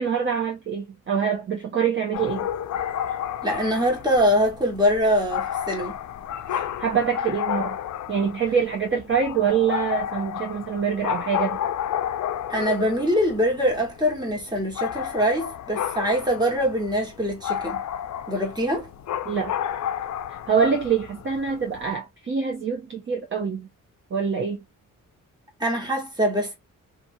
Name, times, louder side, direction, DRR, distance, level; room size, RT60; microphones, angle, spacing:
voice 1, 0.0-2.5 6.8-7.8 8.1-11.6 19.3-19.6 20.5-23.7 24.1-24.6, right 6 dB, 35° right, 0.6 m, -25 dB
sound 1, 2.1-21.9, left 10 dB, 60° left, 0.4 m, -32 dB
voice 2, 3.4-6.0 6.5-6.7 12.5-17.8 18.3-18.9 25.6-26.5, equal, 10° right, 1.3 m, -23 dB
2.7 x 2.5 x 2.6 m
wide cardioid pair, 130°, 33 cm